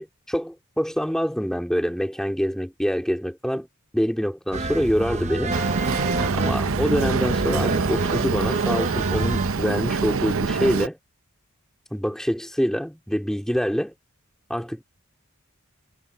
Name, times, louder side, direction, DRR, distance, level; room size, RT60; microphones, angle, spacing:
voice 1, 0.0-3.7 3.9-5.6 6.3-11.0 11.9-13.9 14.5-14.8, equal, ahead, 4.2 m, -25 dB
sound 1, 4.5-9.5, right 2 dB, 35° right, 1.1 m, -28 dB
Boat Water vehicle, 5.5-10.9, right 4 dB, 70° right, 0.7 m, -25 dB
head